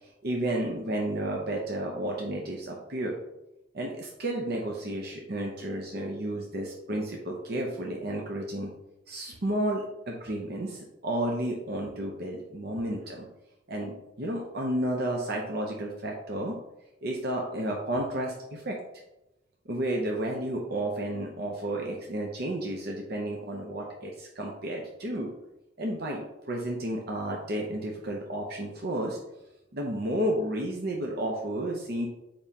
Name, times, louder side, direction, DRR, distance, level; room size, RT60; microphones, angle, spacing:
voice 1, 0.2-3.2 3.7-8.7 9.1-13.3 13.7-16.6 17.0-18.8 19.7-25.3 25.8-29.2 29.7-32.1, right 1 dB, 55° right, 0 dB, 0.7 m, -32 dB
7.1 x 5.1 x 2.8 m, 0.92 s
head